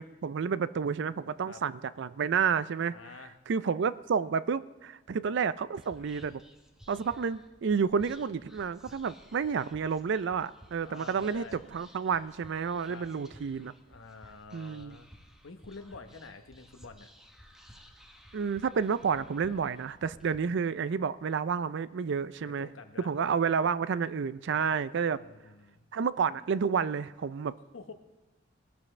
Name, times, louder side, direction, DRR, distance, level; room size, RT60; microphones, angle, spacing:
voice 1, 0.0-3.0 3.5-6.4 6.9-11.4 11.7-13.7 14.5-15.0 18.3-22.7 23.0-25.2 25.9-27.5, right 6 dB, 65° right, 16 dB, 0.4 m, -30 dB
voice 2, 2.9-3.4 10.8-11.6 12.8-13.1 13.9-15.1 15.4-17.1 22.4-23.1 25.1-25.8 27.7-27.9, left 4 dB, 90° left, 7 dB, 1.0 m, -48 dB
Whispering, 5.7-20.4, equal, 5° right, 1.2 m, -56 dB
19.5 x 12.5 x 3.3 m, 1.1 s
head